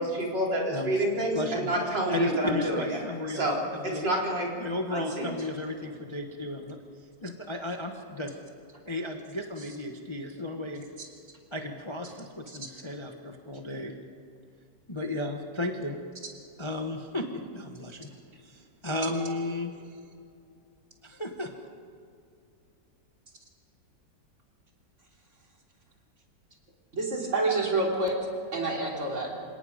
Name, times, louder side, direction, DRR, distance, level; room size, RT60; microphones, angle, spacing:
voice 1, 0.0-3.0 3.3-3.5 3.9-4.5 4.9-5.3, right 1 dB, 75° right, -3 dB, 4.9 m, -28 dB
voice 2, 0.7-1.0 1.3-1.7 2.1-3.5 3.7-4.1 4.6-6.8 7.2-8.4 8.9-10.9 11.5-13.9 14.9-16.0 16.6-18.1 18.4-19.7 21.0-21.5, left 2 dB, 20° left, 4 dB, 1.0 m, -34 dB
voice 3, 26.9-28.2 28.5-29.3, right 2 dB, 40° right, -1 dB, 3.6 m, -28 dB
28.0 x 18.0 x 5.2 m, 2.4 s
omnidirectional pair, 1.9 m